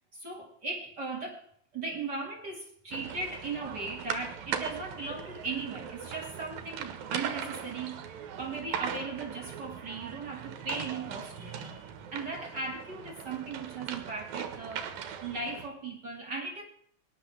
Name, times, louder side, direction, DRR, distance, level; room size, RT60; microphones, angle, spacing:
voice 1, 0.1-1.5 1.7-8.0 8.4-14.9 15.2-16.6, right 3 dB, 35° right, 0 dB, 2.3 m, -38 dB
sound 1, 2.9-15.7, right 8 dB, 80° right, 3.0 m, -39 dB
24.0 x 11.0 x 3.4 m, 0.64 s
omnidirectional pair, 4.2 m